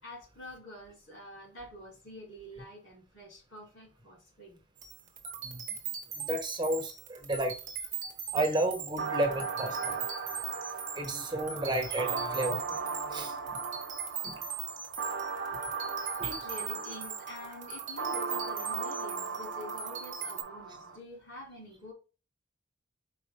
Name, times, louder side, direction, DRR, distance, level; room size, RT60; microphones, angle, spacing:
voice 1, 0.0-4.6 16.2-21.9, left 1 dB, 85° left, 2.8 m, -47 dB
sound 1, 4.8-20.4, right 7 dB, 40° right, 1.2 m, -40 dB
voice 2, 6.1-7.6 8.0-10.1 10.9-13.6 14.2-14.4 15.5-15.6 16.2-16.3, right 1 dB, 25° right, 1.2 m, -33 dB
sound 2, 9.0-21.0, right 5 dB, 65° right, 0.9 m, -37 dB
5.1 x 4.7 x 2.2 m
head